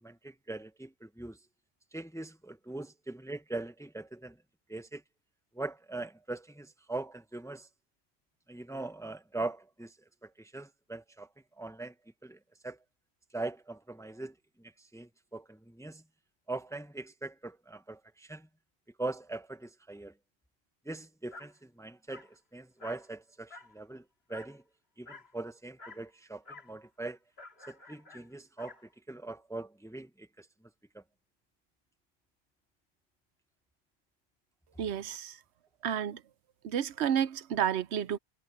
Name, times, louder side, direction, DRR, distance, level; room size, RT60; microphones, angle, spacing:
voice 1, 0.0-1.4 1.9-4.4 4.7-5.0 5.5-7.7 8.5-9.9 10.2-11.3 11.6-11.9 12.2-12.8 13.3-16.0 16.5-18.5 19.0-20.1 20.8-24.0 24.3-24.6 25.0-27.2 27.7-28.8 29.1-30.5 30.9-31.0, right 2 dB, 5° left, 0.7 m, -41 dB
Dog, 21.3-21.5 22.1-22.3 22.8-23.1 23.5-23.8 24.3-24.6 25.1-25.3 25.8-26.1 26.4-26.7 27.4-28.9, left 3 dB, 75° left, 2.3 m, -50 dB
voice 2, 34.8-35.4 35.8-36.2 36.6-38.2, right 9 dB, 90° right, 1.0 m, -31 dB
omnidirectional pair, 1.1 m